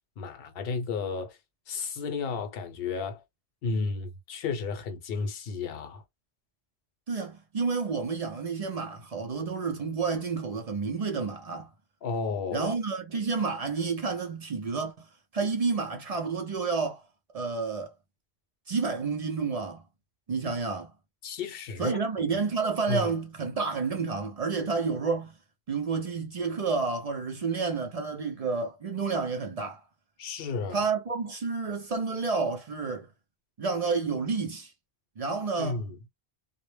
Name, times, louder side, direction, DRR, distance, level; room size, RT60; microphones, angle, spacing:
voice 1, 0.2-1.4 1.7-3.2 3.6-6.0 12.0-12.7 21.2-22.0 22.9-23.1 30.2-30.8 35.6-36.0, left 4 dB, 65° left, 0.8 m, -32 dB
voice 2, 7.1-11.7 12.5-15.1 15.3-17.0 17.3-17.9 18.7-19.8 20.3-20.9 21.8-25.3 25.7-29.8 30.7-33.1 33.6-34.7 35.2-35.8, right 4 dB, 50° right, 0.5 m, -30 dB
2.1 x 2.0 x 3.1 m
omnidirectional pair, 1.1 m